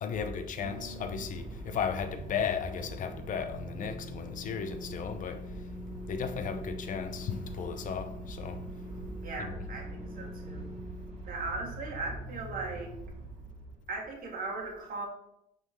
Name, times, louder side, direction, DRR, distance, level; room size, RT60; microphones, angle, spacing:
voice 1, 0.0-5.4 6.1-8.6 9.4-9.7, left 7 dB, 50° left, 0.7 m, -35 dB
sound 1, 0.6-14.0, right 1 dB, 40° right, 2.8 m, -42 dB
voice 2, 9.2-10.7 11.2-12.9 13.9-15.1, right 3 dB, 60° right, 1.9 m, -38 dB
6.1 x 4.0 x 5.4 m
cardioid pair, 110°, 17 cm